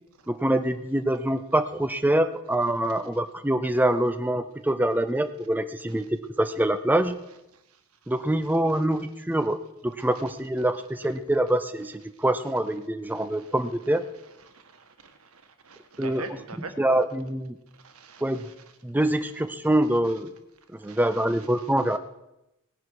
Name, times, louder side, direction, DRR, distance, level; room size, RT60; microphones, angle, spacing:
voice 1, 0.3-6.1 6.4-7.2 8.1-9.6 9.8-14.0 16.0-16.3 16.8-17.6 18.2-18.4 18.8-20.3 20.7-22.0, right 1 dB, 10° right, 9 dB, 0.5 m, -25 dB
voice 2, 14.5-16.7 17.8-18.2 20.9-21.0, right 3 dB, 75° right, 7 dB, 1.5 m, -42 dB
18.5 x 10.5 x 4.8 m, 0.91 s
head